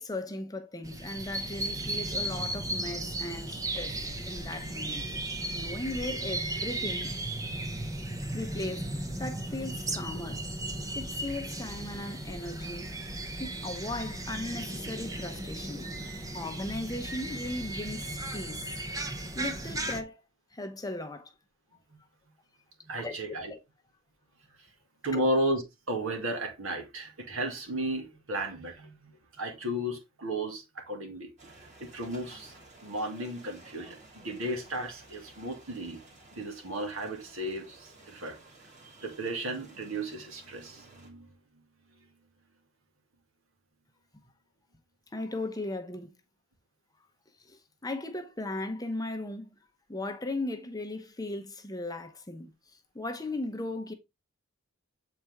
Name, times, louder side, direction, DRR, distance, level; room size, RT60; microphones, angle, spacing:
voice 1, 0.0-5.1 5.5-7.1 8.3-8.9 9.2-10.4 10.9-12.9 13.4-16.1 16.3-18.8 19.3-20.2 20.5-21.3 23.0-23.6 25.1-25.3 45.1-46.1 47.4-49.5 49.9-53.9, left 2 dB, 15° left, 0.8 m, -37 dB
sound 1, 0.8-20.0, right 1 dB, 15° right, 0.9 m, -36 dB
voice 2, 4.1-4.7 5.5-5.6 13.7-13.8 22.8-23.5 25.0-31.3 31.8-32.5 32.8-36.0 36.3-38.4 39.0-41.3, right 1 dB, 70° right, 2.1 m, -34 dB
sound 2, 31.4-41.1, right 2 dB, 35° right, 2.6 m, -54 dB
7.7 x 4.4 x 3.5 m
head